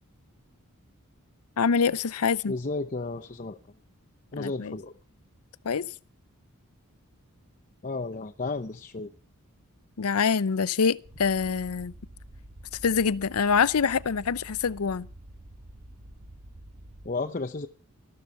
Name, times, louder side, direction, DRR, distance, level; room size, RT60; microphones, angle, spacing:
voice 1, 1.6-2.5 4.4-4.8 5.6-5.9 10.0-11.9 12.8-15.1, left 6 dB, 80° left, 0.6 m, -25 dB
voice 2, 2.5-3.6 4.3-4.9 7.8-9.1 17.0-17.7, left 3 dB, 35° left, 0.7 m, -33 dB
sound 1, 11.0-17.1, right 1 dB, 80° right, 2.3 m, -48 dB
13.5 x 12.5 x 5.7 m
head